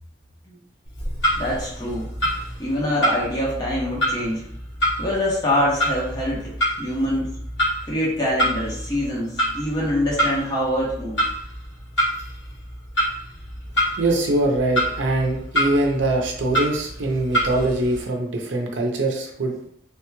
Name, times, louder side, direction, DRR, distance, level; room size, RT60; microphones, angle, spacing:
Clock, 0.8-18.0, equal, 70° left, 0.9 m, -27 dB
voice 1, 1.4-2.1 2.6-4.4 5.0-7.3 7.9-11.2, left 1 dB, 20° left, -5 dB, 0.9 m, -24 dB
voice 2, 14.0-19.6, right 2 dB, 80° right, 1 dB, 0.6 m, -23 dB
3.3 x 3.0 x 2.2 m, 0.69 s
head